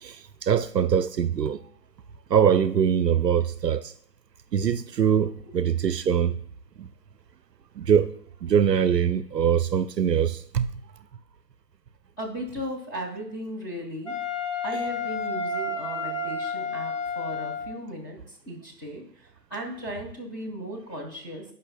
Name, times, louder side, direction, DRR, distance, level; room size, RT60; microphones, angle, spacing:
voice 1, 0.0-1.6 2.3-3.9 4.5-6.3 6.8-6.9 7.8-8.1 8.4-10.7, right 8 dB, 80° right, 0.6 m, -23 dB
voice 2, 12.2-14.1 14.6-21.4, equal, 15° left, 1.1 m, -36 dB
Wind instrument woodwind instrument, 14.1-17.8, left 3 dB, 45° left, 1.3 m, -31 dB
16.0 x 5.4 x 2.2 m
figure-of-eight pair, 155°, 49 cm